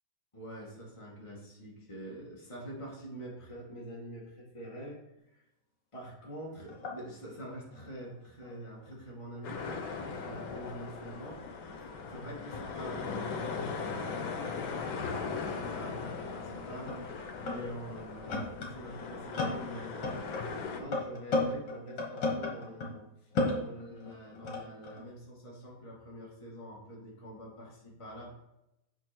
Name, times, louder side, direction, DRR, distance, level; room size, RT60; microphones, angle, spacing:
voice 1, 0.3-5.0 5.3-5.4 5.9-11.4 12.1-20.3 20.7-28.3, equal, 15° left, -4 dB, 2.0 m, -45 dB
sound 1, 6.2-6.3 6.6-9.5 9.8-13.6 14.4-14.6 15.2-23.0 23.3-25.0, left 2 dB, 65° left, 2.1 m, -38 dB
sound 2, 9.4-20.8, left 5 dB, 85° left, 1.7 m, -39 dB
8.0 x 4.7 x 4.5 m, 0.88 s
omnidirectional pair, 2.1 m